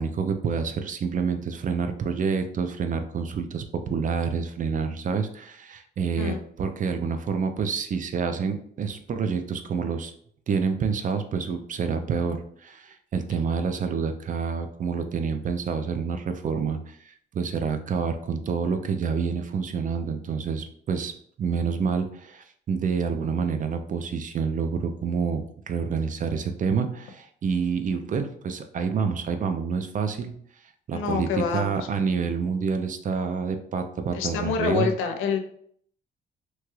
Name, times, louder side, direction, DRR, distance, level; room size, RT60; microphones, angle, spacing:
voice 1, 0.0-10.1 10.5-21.1 21.4-30.3 30.9-34.9, right 5 dB, 40° right, 7 dB, 0.4 m, -28 dB
voice 2, 30.9-31.9 34.1-35.4, left 6 dB, 90° left, 5 dB, 0.5 m, -27 dB
2.9 x 2.3 x 3.0 m, 0.62 s
cardioid pair, 90°, 20 cm